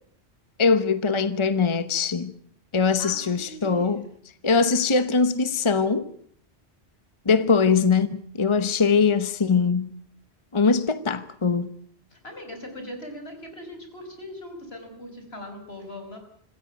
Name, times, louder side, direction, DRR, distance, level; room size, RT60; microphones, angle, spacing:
voice 1, 0.6-2.3 2.7-4.0 4.4-6.1 7.2-9.9 10.5-11.7, left 5 dB, 30° left, 1.0 m, -22 dB
voice 2, 2.7-4.1 12.1-16.2, left 1 dB, 70° left, 5.5 m, -40 dB
26.0 x 15.0 x 9.2 m
omnidirectional pair, 1.1 m